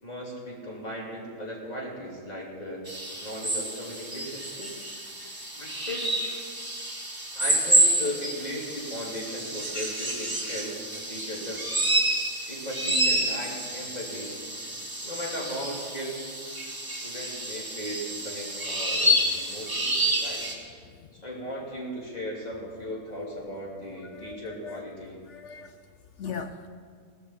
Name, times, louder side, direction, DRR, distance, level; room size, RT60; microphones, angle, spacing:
voice 1, 0.0-2.8 3.2-4.9 5.6-6.1 7.3-11.7 12.3-14.4 15.0-16.3 16.8-20.4 21.2-25.2, equal, 25° left, -3 dB, 2.9 m, -37 dB
sound 1, 2.9-20.5, right 1 dB, 15° right, 1.7 m, -29 dB
voice 2, 24.1-24.9 25.3-25.7 26.2-26.7, left 6 dB, 65° left, 8 dB, 0.7 m, -38 dB
17.0 x 13.5 x 4.4 m, 2.1 s
omnidirectional pair, 1.8 m